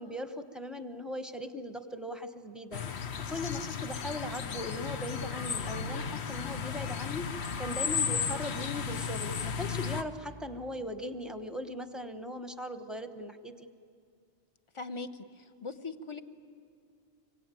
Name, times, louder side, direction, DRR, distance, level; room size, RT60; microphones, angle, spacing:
voice 1, 0.0-13.7, left 1 dB, ahead, 8 dB, 1.0 m, -39 dB
sound 1, 2.7-10.0, left 6 dB, 80° left, 1.2 m, -34 dB
voice 2, 14.7-16.2, left 3 dB, 30° left, 10 dB, 0.9 m, -40 dB
25.5 x 22.5 x 9.0 m, 2.3 s
omnidirectional pair, 1.1 m